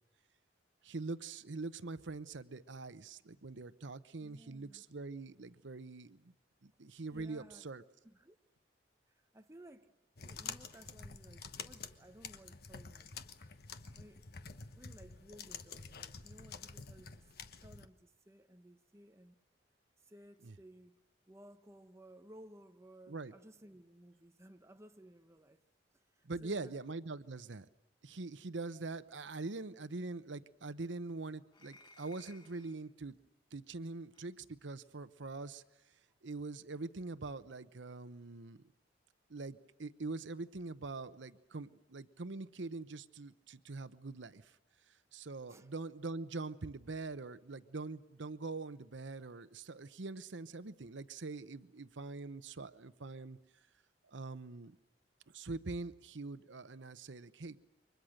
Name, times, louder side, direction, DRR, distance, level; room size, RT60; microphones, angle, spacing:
voice 1, 0.8-6.3 6.6-7.8 20.4-20.5 23.1-23.3 26.2-27.7 28.0-33.2 33.5-35.6 36.2-38.6 39.3-44.6 44.9-53.4 54.1-54.8 55.3-57.7, right 3 dB, 85° right, 0.9 m, -44 dB
voice 2, 4.2-4.8 7.1-7.7 8.0-8.4 9.1-13.1 14.0-14.2 14.7-17.3 17.6-19.4 20.0-21.0 21.3-25.6 25.9-26.8 45.5-45.7, right 1 dB, 15° right, 1.0 m, -58 dB
sound 1, 10.2-17.9, left 5 dB, 60° left, 1.2 m, -49 dB
sound 2, 31.5-32.8 34.1-34.3 35.2-35.4, left 3 dB, 25° left, 1.2 m, -61 dB
29.0 x 24.0 x 6.5 m
head